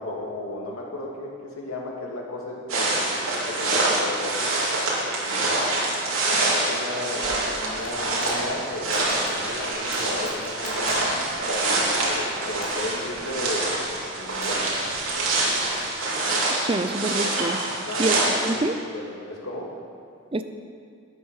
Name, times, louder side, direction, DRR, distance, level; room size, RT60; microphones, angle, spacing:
voice 1, 0.0-4.6 5.1-5.8 6.2-14.7 17.8-18.1 18.4-18.6 18.9-19.7, left 2 dB, 90° left, -2 dB, 2.4 m, -34 dB
sound 1, 2.7-18.5, right 2 dB, 80° right, 3.0 m, -26 dB
Crackle, 7.2-15.9, left 1 dB, 40° left, 3.3 m, -45 dB
voice 2, 16.6-17.6 18.0-18.7 20.3-20.4, right 2 dB, 25° right, 9 dB, 0.6 m, -26 dB
13.0 x 9.5 x 5.8 m, 2.3 s
head